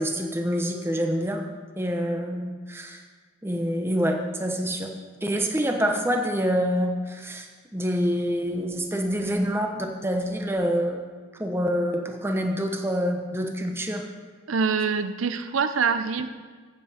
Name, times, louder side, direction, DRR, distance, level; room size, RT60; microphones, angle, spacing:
voice 1, 0.0-1.4 1.8-3.0 3.4-4.9 5.2-9.7 10.0-11.1 11.4-14.1, equal, 10° right, 3 dB, 0.9 m, -26 dB
voice 2, 14.5-16.3, right 5 dB, 85° right, 10 dB, 0.6 m, -25 dB
15.0 x 7.6 x 4.2 m, 1.5 s
head